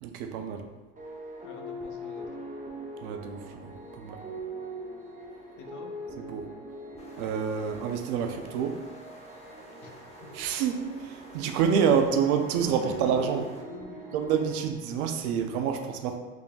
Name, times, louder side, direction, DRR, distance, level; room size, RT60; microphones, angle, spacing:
voice 1, 0.0-0.6 3.0-4.2 6.3-6.5 7.2-8.8 10.3-13.4 14.1-16.2, right 7 dB, 70° right, 5 dB, 0.6 m, -28 dB
sound 1, 1.0-14.7, right 1 dB, 15° right, 0.8 m, -42 dB
voice 2, 1.4-2.4 5.6-5.9 9.8-10.0 10.2-10.3 11.9-12.0 12.6-14.3, left 4 dB, 40° left, 3 dB, 0.7 m, -45 dB
sound 2, 7.0-13.6, left 1 dB, 15° left, 0.9 m, -52 dB
4.9 x 3.4 x 2.2 m, 1.3 s
hypercardioid pair, 70°, 45 cm